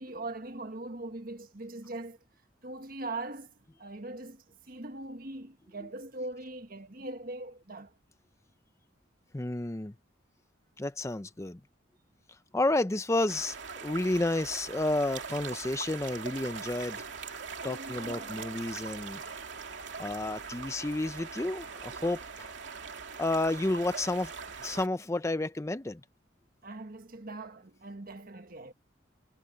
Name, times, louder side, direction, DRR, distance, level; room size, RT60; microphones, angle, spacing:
voice 1, 0.0-2.2 2.6-3.5 3.8-7.9 17.6-18.4 26.6-28.7, right 2 dB, 50° right, 1.5 m, -41 dB
voice 2, 9.3-9.9 10.8-11.6 12.5-13.6 13.8-17.0 17.6-19.2 20.0-22.5 23.2-24.3 24.6-26.0, left 2 dB, 15° left, 0.5 m, -31 dB
sound 1, 13.3-24.9, right 5 dB, 70° right, 2.6 m, -42 dB
head